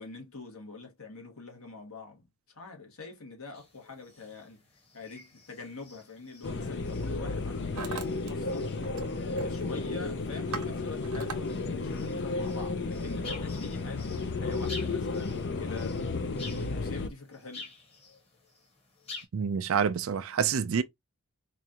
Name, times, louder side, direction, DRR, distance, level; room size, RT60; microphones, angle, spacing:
voice 1, 0.0-4.6 4.9-8.8 9.3-16.0 16.7-17.7, left 4 dB, 70° left, 1.7 m, -45 dB
sound 1, 3.5-19.3, left 3 dB, 25° left, 1.3 m, -50 dB
Hammer, 5.8-6.0 6.8-7.1 7.3-8.3 8.6-9.1 9.4-9.7 10.1-11.4, right 4 dB, 85° right, 0.9 m, -41 dB
sound 2, 6.4-17.1, left 3 dB, 50° left, 0.5 m, -33 dB
voice 2, 19.3-20.8, right 7 dB, 65° right, 0.4 m, -27 dB
4.6 x 2.5 x 2.8 m
head